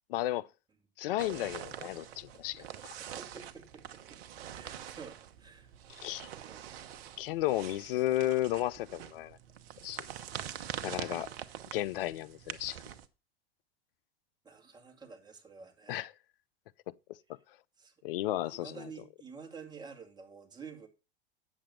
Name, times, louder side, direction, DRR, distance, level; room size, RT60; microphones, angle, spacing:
voice 1, 0.1-0.5 1.0-2.9 6.0-6.3 7.2-9.4 9.8-10.0 10.8-11.3 11.7-12.8 15.9-16.1 18.0-18.8, left 15 dB, 60° left, 0.5 m, -33 dB
sound 1, 1.2-13.1, right 10 dB, 65° right, 1.1 m, -45 dB
voice 2, 3.2-4.2 4.5-5.7 6.2-6.6 10.9-11.4 14.4-16.0 17.8-17.9 18.3-20.9, right 5 dB, 15° right, 2.5 m, -50 dB
8.6 x 7.4 x 5.7 m
hypercardioid pair, 95°, 32 cm